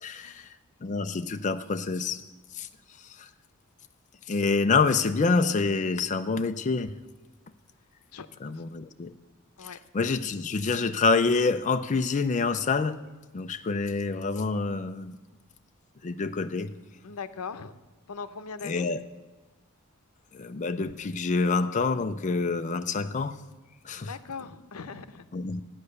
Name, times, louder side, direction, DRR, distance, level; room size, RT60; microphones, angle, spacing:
voice 1, 0.0-0.5 0.8-2.2 2.5-2.7 3.0-3.3 4.3-6.9 8.4-9.1 9.6-13.0 13.3-15.2 16.0-16.7 18.6-19.0 20.3-23.4 23.8-24.2 25.3-25.6, left 4 dB, 35° left, 0.4 m, -27 dB
voice 2, 17.0-17.8 18.1-18.9 24.0-25.3, left 5 dB, 85° left, 0.8 m, -39 dB
13.5 x 9.6 x 6.6 m
head